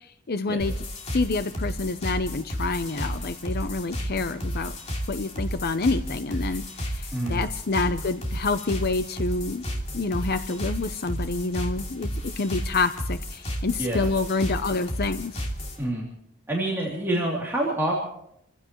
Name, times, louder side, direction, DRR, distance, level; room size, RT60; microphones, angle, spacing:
voice 1, 0.3-0.7 1.1-4.8 5.1-9.6 9.9-12.1 12.4-15.4, left 3 dB, 45° left, 10 dB, 0.7 m, -27 dB
sound 1, 0.6-15.8, equal, 30° left, 2.7 m, -32 dB
voice 2, 7.1-7.4 13.8-14.1 15.8-16.1 16.5-18.0, right 1 dB, 10° right, -5 dB, 3.0 m, -27 dB
29.0 x 15.5 x 3.1 m, 0.74 s
head